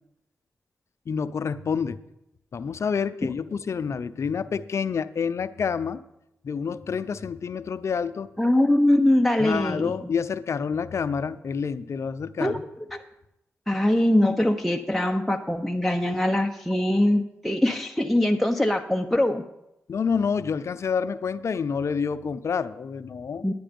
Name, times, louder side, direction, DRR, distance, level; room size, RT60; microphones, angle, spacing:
voice 1, 1.1-2.0 2.5-6.0 6.4-8.3 9.4-12.6 19.9-23.5, left 6 dB, 65° left, 13 dB, 0.6 m, -28 dB
voice 2, 8.4-10.1 12.4-12.6 12.9-13.0 13.7-19.4 23.4-23.5, left 1 dB, 5° left, 3 dB, 0.8 m, -22 dB
10.0 x 9.6 x 5.2 m, 0.86 s
cardioid pair, 50°, 5 cm